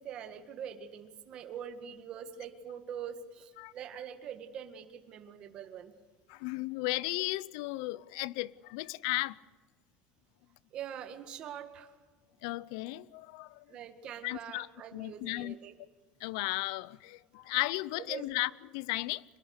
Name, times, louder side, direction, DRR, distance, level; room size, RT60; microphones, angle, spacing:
voice 1, 0.0-5.9 10.7-11.9 13.7-15.7 17.4-17.5 18.0-18.3, right 8 dB, 35° right, 1.8 m, -44 dB
voice 2, 6.3-9.4 12.4-13.6 14.2-14.7 14.9-15.6 16.2-19.2, left 20 dB, 85° left, 0.6 m, -35 dB
23.5 x 21.5 x 6.6 m
cardioid pair, 175°, 3 cm